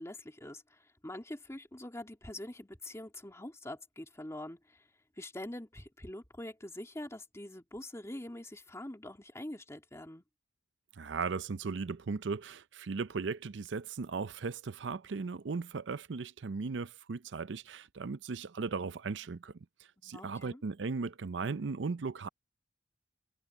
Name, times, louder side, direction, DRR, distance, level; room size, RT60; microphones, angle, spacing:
voice 1, 0.0-4.9 5.2-10.2 20.0-20.6, left 1 dB, 15° left, 2.5 m, -44 dB
voice 2, 11.0-19.5 20.0-22.3, right 4 dB, 75° right, 0.6 m, -37 dB
head